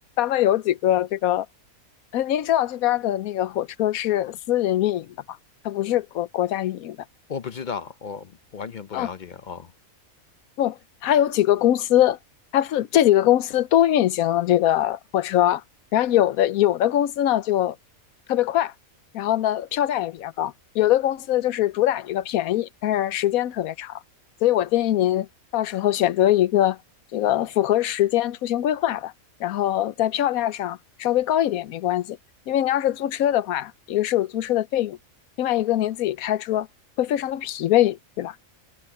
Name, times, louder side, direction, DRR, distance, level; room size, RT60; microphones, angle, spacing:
voice 1, 0.0-1.5 2.1-5.4 5.6-7.0 8.9-9.1 10.6-12.2 12.5-15.6 15.9-17.8 18.3-18.7 19.1-24.0 24.4-25.3 25.5-26.8 27.1-29.1 29.4-32.2 32.5-35.0 35.4-36.7 37.0-38.3, left 12 dB, 80° left, 1.1 m, -22 dB
voice 2, 7.3-9.7, left 6 dB, 50° left, 0.6 m, -35 dB
omnidirectional pair, 1.5 m